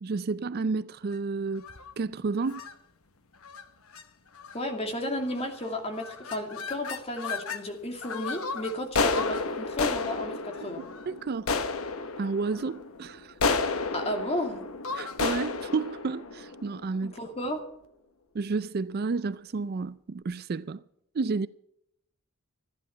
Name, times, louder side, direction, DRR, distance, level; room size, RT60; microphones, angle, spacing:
voice 1, 0.0-1.7 2.0-2.6 11.1-11.5 12.2-13.3 14.9-17.2 18.3-20.8 21.1-21.5, right 4 dB, 45° right, 0.4 m, -31 dB
sound 1, 1.6-1.9 2.5-2.7 3.4-3.6 3.9-4.0 4.4-4.8 5.3-5.7 5.9-7.6 8.0-17.2, left 4 dB, 85° left, 1.1 m, -32 dB
voice 2, 4.5-10.9 13.9-14.6 17.0-17.6, left 1 dB, 30° left, 2.4 m, -33 dB
15.0 x 10.5 x 5.8 m
head